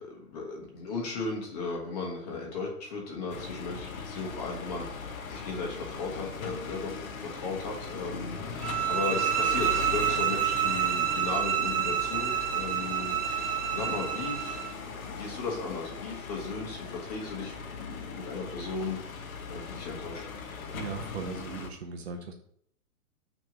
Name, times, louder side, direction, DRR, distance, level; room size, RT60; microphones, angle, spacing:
voice 1, 0.0-19.0 19.5-20.3, left 3 dB, 25° left, 0 dB, 1.4 m, -36 dB
sound 1, 3.3-21.7, left 5 dB, 65° left, 1.1 m, -39 dB
sound 2, 8.6-14.8, right 10 dB, 75° right, 1.3 m, -28 dB
voice 2, 20.7-22.3, right 5 dB, 45° right, 5 dB, 0.7 m, -38 dB
6.1 x 3.5 x 6.0 m, 0.66 s
hypercardioid pair, 165°, 45 cm